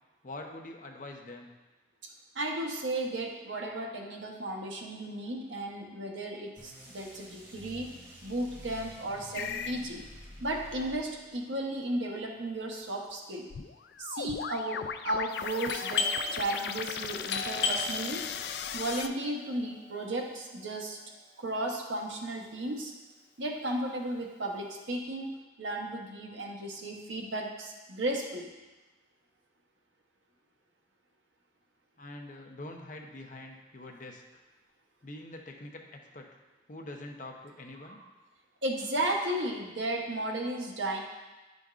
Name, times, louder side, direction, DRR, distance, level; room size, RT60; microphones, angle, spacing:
voice 1, 0.2-1.5 32.0-34.4 35.0-36.4 36.7-38.0, left 2 dB, 45° left, 2 dB, 0.7 m, -45 dB
voice 2, 2.3-7.9 8.2-10.0 10.4-13.5 14.0-18.3 18.7-21.0 21.4-22.9 23.4-28.5 38.6-41.0, right 1 dB, 85° right, 0 dB, 1.0 m, -34 dB
sound 1, 6.6-11.4, equal, 15° right, 0.9 m, -49 dB
sound 2, 9.3-9.8 13.5-19.1, left 7 dB, 60° left, 0.3 m, -37 dB
Doorbell, 15.7-21.1, left 4 dB, 80° left, 0.8 m, -36 dB
10.0 x 5.2 x 2.4 m, 1.2 s
head